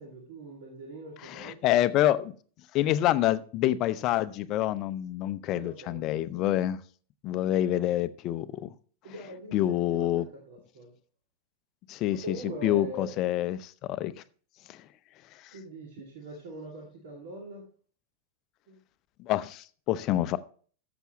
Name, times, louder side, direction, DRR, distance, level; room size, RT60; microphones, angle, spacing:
voice 1, 0.0-2.0 5.5-6.6 9.0-10.9 12.1-13.1 15.5-17.7 18.7-18.8, right 1 dB, 55° right, 0 dB, 2.2 m, -43 dB
voice 2, 1.2-2.3 2.7-6.8 7.2-8.7 9.5-10.2 11.9-12.4 12.6-14.1 14.7-14.8 19.2-20.4, left 13 dB, 35° left, 15 dB, 0.6 m, -27 dB
13.5 x 7.1 x 3.0 m, 0.42 s
figure-of-eight pair, 90°, 0 cm